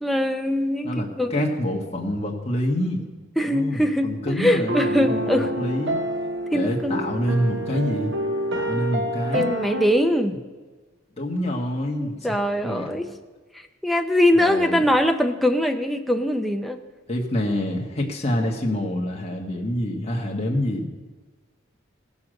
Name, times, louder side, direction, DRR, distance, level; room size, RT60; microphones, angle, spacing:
voice 1, 0.0-1.6 3.4-5.5 6.5-7.0 9.3-10.4 11.9-13.1 13.8-16.8, left 1 dB, ahead, 5 dB, 0.6 m, -22 dB
voice 2, 0.8-3.1 3.4-6.0 6.5-8.1 8.5-9.5 11.2-12.4 12.6-12.9 14.3-14.9 17.1-20.9, left 1 dB, 30° left, -1 dB, 1.6 m, -26 dB
sound 1, 4.5-9.9, right 1 dB, 60° right, 1.1 m, -28 dB
16.5 x 7.1 x 6.6 m, 1.3 s
head